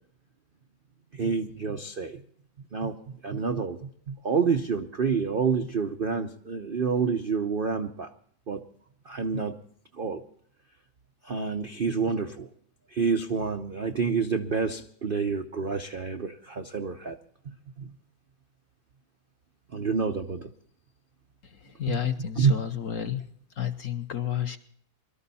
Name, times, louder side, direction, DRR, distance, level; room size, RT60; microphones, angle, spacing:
voice 1, 1.1-2.2 2.7-3.8 4.1-8.1 8.5-8.6 9.1-9.6 9.9-10.2 11.2-12.5 12.9-17.2 17.4-17.9 19.7-20.5 21.9-22.0 22.4-22.5, right 5 dB, 65° right, 6 dB, 0.5 m, -28 dB
voice 2, 21.4-23.3 23.6-24.6, left 10 dB, 55° left, 8 dB, 1.0 m, -31 dB
22.5 x 13.0 x 4.1 m, 0.64 s
omnidirectional pair, 2.1 m